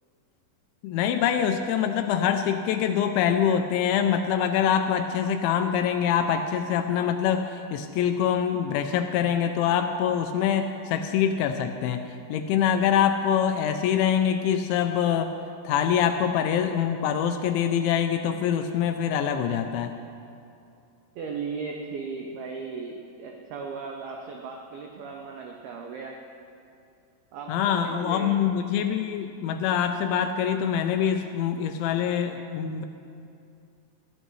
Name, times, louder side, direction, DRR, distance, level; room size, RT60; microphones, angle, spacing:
voice 1, 0.8-12.0 12.3-15.3 15.6-19.9 27.5-32.9, left 8 dB, 85° left, 7 dB, 2.7 m, -24 dB
voice 2, 21.2-26.2 27.3-28.3, right 4 dB, 90° right, 1 dB, 2.1 m, -36 dB
21.0 x 15.0 x 3.2 m, 2.5 s
omnidirectional pair, 5.7 m